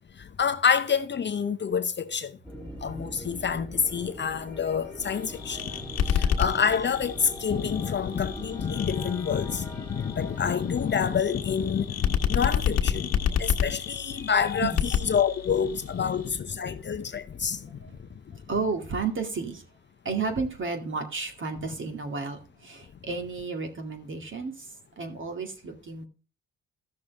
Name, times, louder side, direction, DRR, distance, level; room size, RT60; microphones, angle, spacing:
voice 1, 0.4-2.3 2.8-5.6 6.1-17.6, left 7 dB, 35° left, 0.7 m, -27 dB
sound 1, 2.4-13.8, equal, 5° left, 2.9 m, -42 dB
sound 2, 5.0-16.3, left 8 dB, 55° left, 1.4 m, -30 dB
voice 2, 18.5-19.6 20.0-24.5 25.0-26.1, right 4 dB, 40° right, 2.3 m, -32 dB
14.5 x 6.4 x 3.4 m
cardioid pair, 90°, 30 cm